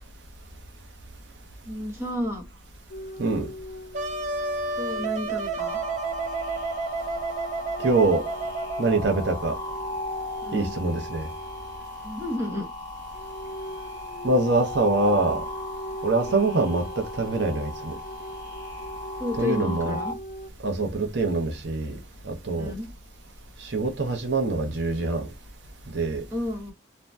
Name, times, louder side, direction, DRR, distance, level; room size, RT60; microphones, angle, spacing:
voice 1, 1.6-2.5 4.8-5.8 10.4-10.7 12.0-12.7 16.3-16.6 19.2-20.2 22.5-22.9 26.3-26.7, left 1 dB, 15° right, 0.9 m, -31 dB
sound 1, 2.9-12.0 13.1-20.5, equal, 50° left, 0.5 m, -41 dB
Wind instrument woodwind instrument, 3.9-9.4, right 3 dB, 40° right, 0.4 m, -31 dB
laser beam, 5.6-20.1, left 1 dB, 15° left, 0.9 m, -37 dB
voice 2, 7.8-8.2 8.8-9.6 10.5-11.3 14.2-15.4 16.0-18.0 19.4-20.0 20.6-21.9 22.2-22.7 23.7-25.3 25.9-26.2, right 3 dB, 70° right, 0.7 m, -24 dB
2.6 x 2.1 x 3.3 m
head